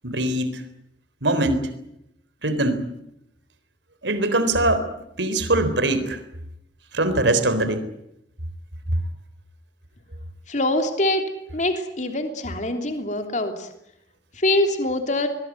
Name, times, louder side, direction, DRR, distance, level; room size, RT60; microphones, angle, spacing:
voice 1, 0.0-0.6 1.2-1.7 2.4-2.8 4.0-4.8 5.2-6.2 6.9-7.9, right 2 dB, 90° right, 11 dB, 3.9 m, -22 dB
voice 2, 10.5-11.2 11.5-13.7 14.4-15.3, left 1 dB, 45° left, 6 dB, 3.3 m, -24 dB
23.0 x 22.0 x 9.5 m, 0.81 s
head